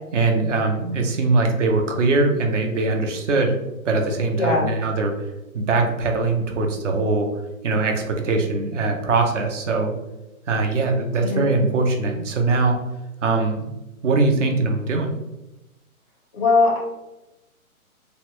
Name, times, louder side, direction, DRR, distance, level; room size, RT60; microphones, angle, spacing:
voice 1, 0.1-3.6 3.8-5.1 5.5-7.3 7.6-9.9 10.5-12.8 13.2-13.7 14.0-15.1, right 3 dB, 55° right, 2 dB, 0.6 m, -21 dB
voice 2, 11.2-11.5 16.3-16.8, left 3 dB, 20° left, -3 dB, 0.4 m, -19 dB
2.8 x 2.1 x 3.0 m, 1.0 s
hypercardioid pair, 150°, 44 cm